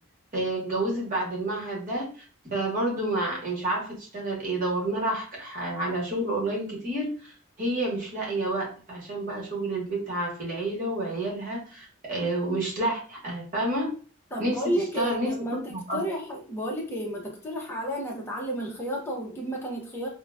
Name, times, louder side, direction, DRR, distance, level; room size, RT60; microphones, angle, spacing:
voice 1, 0.3-2.1 2.5-13.9 14.4-14.6 15.0-15.3 15.7-16.0, right 1 dB, 40° right, -3 dB, 1.2 m, -29 dB
voice 2, 14.3-20.1, right 1 dB, 10° left, -2 dB, 0.6 m, -32 dB
3.8 x 2.2 x 2.2 m, 0.38 s
head